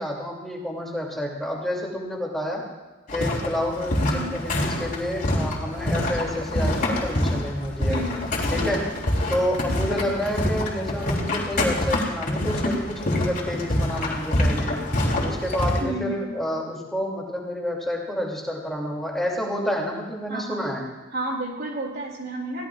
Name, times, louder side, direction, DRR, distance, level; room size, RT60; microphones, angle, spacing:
voice 1, 0.0-2.6 3.1-8.0 8.5-8.8 9.3-14.8 15.2-20.8, equal, ahead, -2 dB, 2.7 m, -29 dB
sound 1, 3.1-15.8, left 1 dB, 45° left, 3.4 m, -26 dB
voice 2, 7.9-8.8 9.8-10.1 15.8-16.4 20.3-20.6 21.1-22.7, right 1 dB, 55° right, 0 dB, 2.8 m, -32 dB
22.5 x 17.0 x 2.5 m, 1.2 s
head